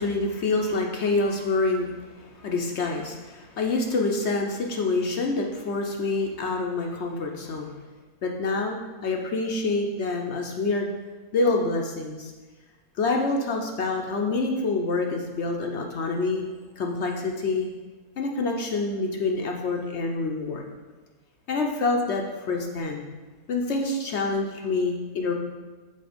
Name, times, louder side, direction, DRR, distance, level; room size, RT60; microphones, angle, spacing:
voice 1, 0.0-7.7 8.2-8.8 9.0-10.9 11.3-12.3 13.0-16.5 16.8-17.7 18.2-20.7 21.5-23.0 23.5-25.3, left 3 dB, 60° left, 2 dB, 0.8 m, -27 dB
6.7 x 4.1 x 5.0 m, 1.3 s
omnidirectional pair, 1.6 m